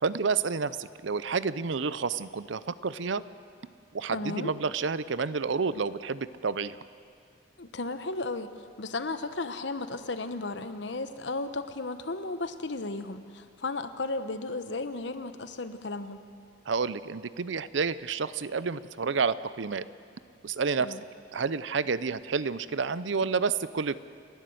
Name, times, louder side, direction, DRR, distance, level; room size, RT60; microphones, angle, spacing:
voice 1, 0.0-3.2 3.9-6.8 16.7-19.8 20.4-21.0 21.3-24.0, right 5 dB, 75° right, 16 dB, 0.6 m, -29 dB
voice 2, 4.1-4.5 7.6-8.5 8.8-16.2 20.8-21.0, left 3 dB, 65° left, 10 dB, 1.0 m, -34 dB
29.0 x 12.0 x 7.9 m, 2.4 s
head